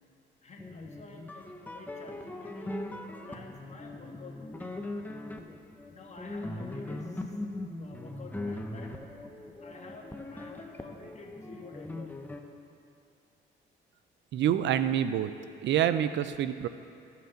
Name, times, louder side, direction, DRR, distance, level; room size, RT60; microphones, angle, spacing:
voice 1, 0.4-2.7 3.2-4.8 5.9-7.4 7.7-8.9 9.6-12.1, left 3 dB, 35° left, 0 dB, 1.4 m, -50 dB
sound 1, 0.6-12.4, left 2 dB, 10° left, 0.7 m, -40 dB
voice 2, 14.3-15.3 15.6-16.7, right 10 dB, 65° right, 12 dB, 0.4 m, -27 dB
14.0 x 5.7 x 3.8 m, 2.6 s
cardioid pair, 90°, 20 cm